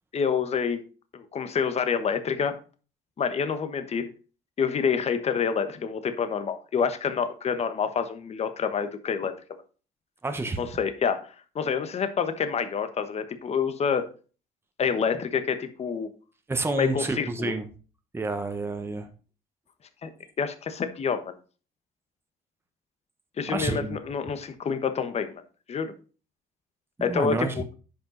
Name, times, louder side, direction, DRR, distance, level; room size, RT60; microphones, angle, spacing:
voice 1, 0.1-0.8 1.1-2.6 3.2-4.1 4.6-9.3 10.6-14.1 14.8-16.1 16.7-17.5 20.0-20.1 20.4-21.3 23.4-25.3 25.7-25.9 27.0-27.6, left 6 dB, 40° left, 10 dB, 1.2 m, -27 dB
voice 2, 10.2-10.7 16.5-17.7 18.1-19.1 23.5-24.0 27.0-27.5, right 3 dB, 15° right, 6 dB, 1.2 m, -29 dB
10.0 x 5.5 x 4.0 m, 0.37 s
cardioid pair, 110°, 17 cm